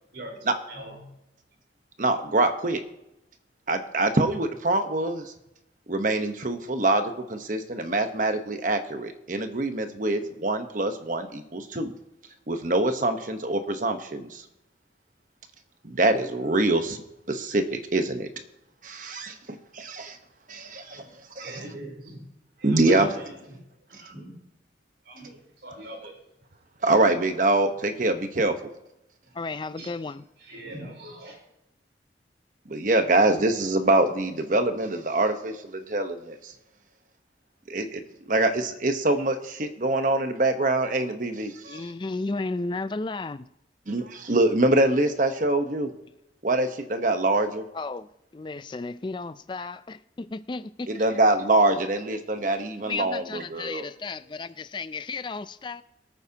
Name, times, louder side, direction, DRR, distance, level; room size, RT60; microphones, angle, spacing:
voice 1, 0.1-1.1 20.8-22.2 22.6-23.6 23.9-24.3 25.0-26.2 29.2-29.3 29.8-29.9 30.4-31.4, right 1 dB, 75° right, 4.1 m, -42 dB
voice 2, 2.0-2.8 3.7-5.3 5.9-11.9 12.5-14.5 15.8-17.0 17.3-18.3 18.8-20.2 20.5-21.6 22.6-23.2 23.9-24.0 26.8-28.7 32.6-36.5 37.7-41.9 43.9-45.9 46.4-47.6 50.9-53.8, right 2 dB, 45° right, 1.0 m, -25 dB
voice 3, 29.3-30.3 41.7-43.5 47.7-50.9 52.8-55.8, left 3 dB, 25° left, 0.3 m, -33 dB
23.0 x 9.0 x 2.9 m
head